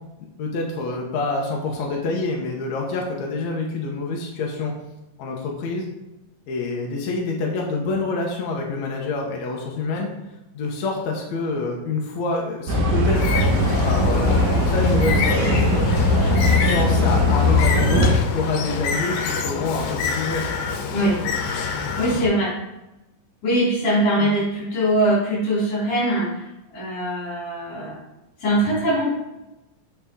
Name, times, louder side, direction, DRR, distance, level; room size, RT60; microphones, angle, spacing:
voice 1, 0.4-4.7 5.2-5.9 6.5-10.1 10.5-13.4 13.8-18.1 18.3-20.5 24.2-24.3, left 3 dB, 65° left, -1 dB, 1.9 m, -27 dB
sound 1, 12.7-18.2, left 1 dB, 55° right, 2.7 m, -19 dB
Bird, 13.2-22.3, left 5 dB, 85° left, 2.7 m, -27 dB
voice 2, 20.9-21.2 22.0-22.6 23.4-28.0 28.4-29.1, right 1 dB, 45° left, -6 dB, 4.2 m, -22 dB
8.6 x 5.7 x 3.7 m, 0.97 s
omnidirectional pair, 4.2 m